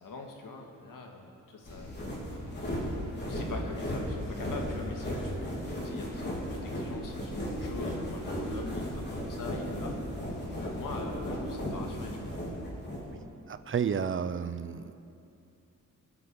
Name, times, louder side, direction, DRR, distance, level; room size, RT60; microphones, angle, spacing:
voice 1, 0.0-2.0 2.6-10.2 10.5-12.2, left 3 dB, 80° left, 2 dB, 1.8 m, -43 dB
sound 1, 1.6-13.0, equal, 35° left, 3.4 m, -35 dB
voice 2, 13.5-15.0, right 7 dB, 40° right, 12 dB, 0.5 m, -31 dB
24.0 x 8.0 x 5.3 m, 2.7 s
wide cardioid pair, 150°, 32 cm